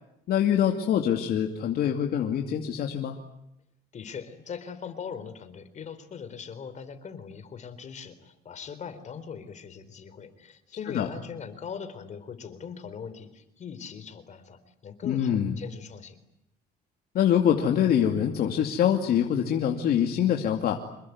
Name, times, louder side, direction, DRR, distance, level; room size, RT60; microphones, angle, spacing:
voice 1, 0.3-3.2 10.9-11.1 15.0-15.6 17.1-20.8, left 9 dB, 65° left, 3 dB, 2.6 m, -24 dB
voice 2, 3.9-16.2, left 6 dB, 45° left, 12 dB, 4.0 m, -40 dB
27.0 x 22.0 x 9.6 m, 0.81 s
cardioid pair, 110°, 17 cm